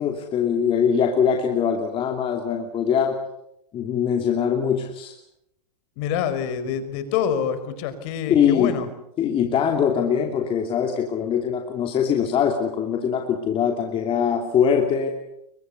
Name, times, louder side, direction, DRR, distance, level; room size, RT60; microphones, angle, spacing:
voice 1, 0.0-3.2 3.7-5.1 8.3-8.8 9.2-15.1, left 7 dB, 25° left, 3 dB, 2.8 m, -22 dB
voice 2, 6.0-8.9, left 8 dB, 45° left, 12 dB, 4.9 m, -26 dB
30.0 x 23.5 x 6.9 m, 0.79 s
hypercardioid pair, 135°, 20 cm